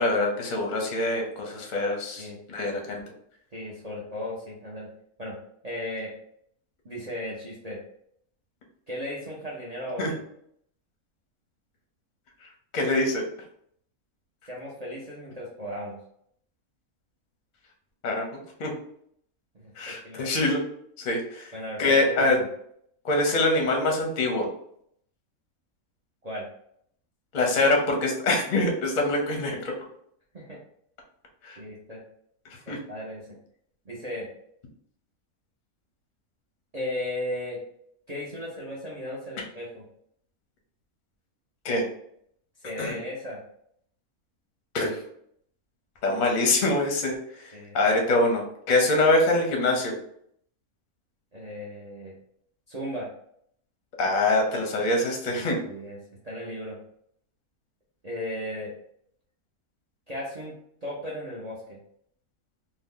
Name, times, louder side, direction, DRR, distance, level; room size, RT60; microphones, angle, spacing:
voice 1, 0.0-3.0 10.0-10.1 12.7-13.2 18.0-18.7 19.8-20.6 21.0-21.5 21.8-22.4 23.0-24.5 27.3-29.7 31.4-31.6 32.7-32.8 41.6-41.8 42.8-43.0 44.7-45.0 46.0-49.9 54.0-55.6, left 2 dB, 45° left, 1 dB, 0.6 m, -24 dB
voice 2, 3.5-4.9 5.2-5.4 5.6-6.1 6.8-7.8 8.9-10.1 14.5-16.0 19.6-20.3 21.5-22.5 26.2-26.5 30.3-30.6 31.6-32.0 32.7-33.4 33.9-34.3 36.7-37.6 38.1-39.8 42.6-43.4 47.5-47.8 51.3-52.1 52.7-53.1 55.3-56.0 56.2-56.8 58.0-58.7 60.1-60.6 60.8-61.8, left 1 dB, 45° right, -4 dB, 0.5 m, -36 dB
2.7 x 2.2 x 3.6 m, 0.68 s
omnidirectional pair, 1.5 m